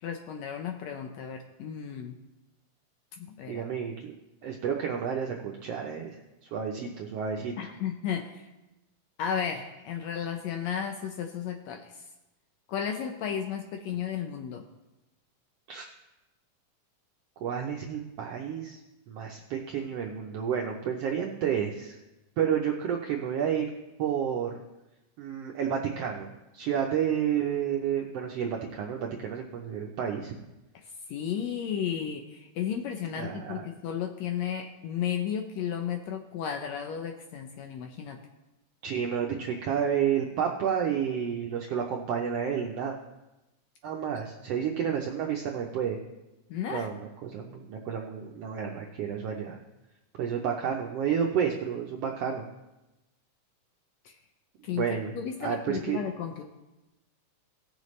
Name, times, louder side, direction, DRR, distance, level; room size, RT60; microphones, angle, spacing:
voice 1, 0.0-2.2 3.2-3.7 7.6-8.5 9.2-12.0 12.7-14.6 31.1-38.2 46.5-46.9 54.0-54.2 54.6-54.8 55.1-56.4, left 8 dB, 75° left, 4 dB, 1.7 m, -33 dB
voice 2, 3.5-4.1 4.4-7.5 15.7-15.9 17.4-18.8 19.1-22.0 22.4-23.7 24.0-24.5 25.2-30.3 33.2-33.6 38.8-43.0 43.8-46.0 46.7-49.6 50.2-52.5 54.7-56.0, right 8 dB, 80° right, 0 dB, 1.4 m, -30 dB
18.5 x 6.8 x 3.1 m, 0.99 s
omnidirectional pair, 3.6 m